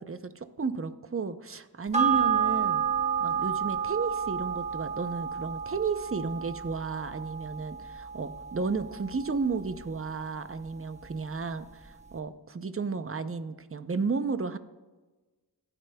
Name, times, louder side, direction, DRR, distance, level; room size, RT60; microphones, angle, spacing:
voice 1, 0.0-2.8 3.2-14.6, right 4 dB, 35° right, 11 dB, 0.6 m, -33 dB
sound 1, 1.9-10.7 11.0-11.1, right 8 dB, 15° right, 1.1 m, -31 dB
24.5 x 8.9 x 2.2 m, 1.2 s
wide cardioid pair, 65°, 39 cm